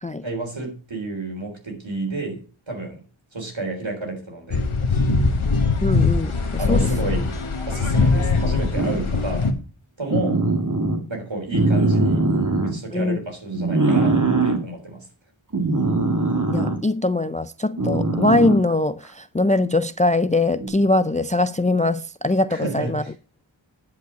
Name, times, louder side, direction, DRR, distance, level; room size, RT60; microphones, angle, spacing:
voice 1, 0.2-3.0 3.3-5.0 6.6-7.3 7.7-9.5 10.0-10.4 11.1-12.3 12.6-15.1 22.5-23.1, right 2 dB, 65° right, 3.8 m, -30 dB
sound 1, 4.5-9.5, left 3 dB, 85° left, 1.4 m, -21 dB
voice 2, 5.8-6.3 6.7-6.9 12.9-13.2 15.9-23.0, left 2 dB, 15° left, 0.4 m, -22 dB
sound 2, 8.7-9.2 10.1-11.0 11.5-12.7 13.5-14.6 15.5-16.8 17.8-18.7 20.6-20.7, right 2 dB, 40° right, 2.0 m, -21 dB
10.5 x 5.3 x 6.1 m
wide cardioid pair, 50°, 48 cm